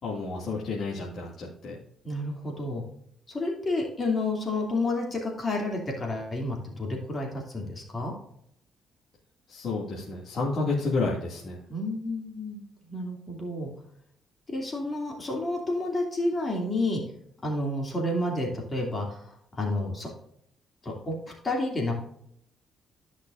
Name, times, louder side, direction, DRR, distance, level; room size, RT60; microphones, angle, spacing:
voice 1, 0.0-1.8 9.5-11.6, left 3 dB, 55° left, -5 dB, 2.3 m, -30 dB
voice 2, 2.0-2.8 3.3-8.1 11.7-12.6 12.9-13.7 14.5-17.0 17.4-20.1 20.8-21.1 21.4-22.0, left 2 dB, 30° left, 0 dB, 2.7 m, -30 dB
14.0 x 6.0 x 2.6 m, 0.71 s
cardioid pair, 90°, 0 cm